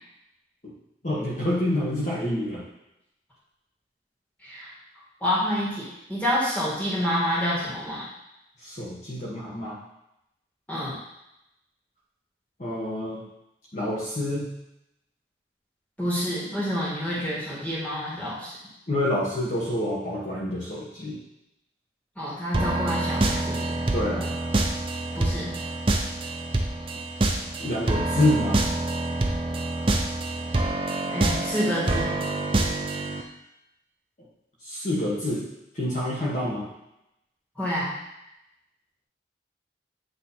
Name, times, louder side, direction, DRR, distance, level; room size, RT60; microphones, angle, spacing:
voice 1, 1.0-2.6 8.6-9.8 12.6-13.2 13.7-14.5 18.9-21.2 23.9-24.3 27.6-28.6 34.6-35.4 35.7-36.7, left 1 dB, 40° left, -7 dB, 1.2 m, -27 dB
voice 2, 5.2-8.1 10.7-11.0 16.0-18.5 22.2-23.8 25.1-25.5 31.1-32.1 37.6-37.9, equal, 10° left, -8 dB, 1.9 m, -28 dB
sound 1, 22.5-33.2, right 2 dB, 30° right, 0.5 m, -26 dB
8.0 x 3.1 x 4.3 m, 0.86 s
head